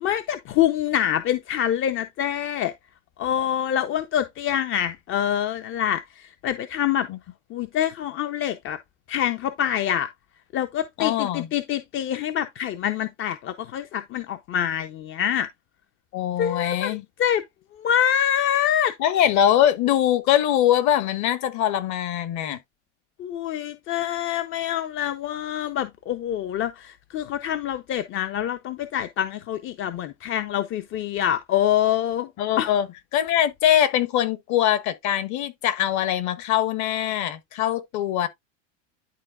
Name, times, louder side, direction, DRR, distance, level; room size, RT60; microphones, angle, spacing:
voice 1, 0.0-2.7 3.2-7.1 7.5-8.8 9.1-10.1 10.5-15.5 16.4-17.4 17.8-18.9 23.2-32.3 32.6-32.7, left 10 dB, 35° left, 0.6 m, -25 dB
voice 2, 11.0-11.5 16.1-17.0 19.0-22.6 32.4-32.9 33.1-38.3, left 11 dB, 50° left, 1.4 m, -22 dB
11.0 x 4.0 x 2.4 m
hypercardioid pair, 110°, 37 cm